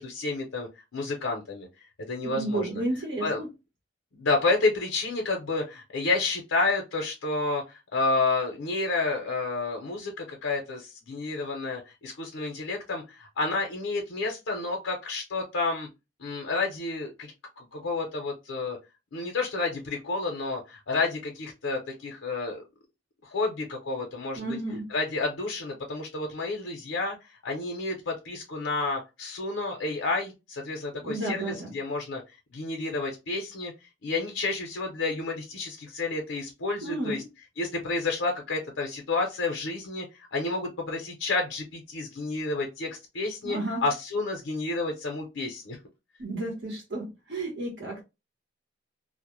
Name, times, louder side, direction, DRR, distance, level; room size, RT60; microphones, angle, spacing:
voice 1, 0.0-1.7 2.1-2.8 3.2-3.4 4.1-15.9 16.2-18.8 19.1-22.6 23.2-24.5 24.9-32.2 32.5-33.7 34.0-37.2 37.6-45.8, left 3 dB, 90° left, 0.6 m, -30 dB
voice 2, 2.2-3.5 24.4-24.9 30.9-31.7 36.8-37.2 43.4-43.8 46.2-48.0, right 2 dB, 65° right, 0.8 m, -32 dB
2.1 x 2.0 x 2.9 m
head